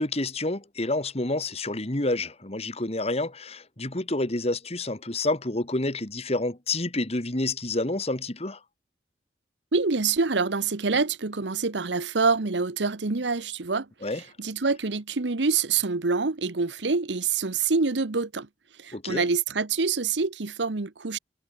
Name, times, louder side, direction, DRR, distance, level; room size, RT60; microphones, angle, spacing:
voice 1, 0.0-8.6 14.0-14.2 18.9-19.2, left 2 dB, 35° left, 2.2 m, -28 dB
voice 2, 9.7-13.9 14.4-18.5 18.8-21.2, right 4 dB, 90° right, 1.1 m, -26 dB
head